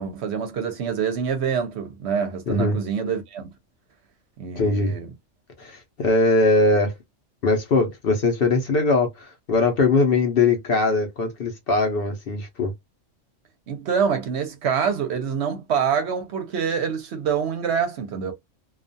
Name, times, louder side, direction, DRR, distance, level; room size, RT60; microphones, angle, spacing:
voice 1, 0.0-3.5 4.4-5.1 13.7-18.3, right 7 dB, 65° right, 0.8 m, -26 dB
voice 2, 2.5-2.8 4.6-4.9 5.6-6.9 7.4-12.7, left 3 dB, 55° left, 0.7 m, -21 dB
2.3 x 2.3 x 2.5 m
omnidirectional pair, 1.3 m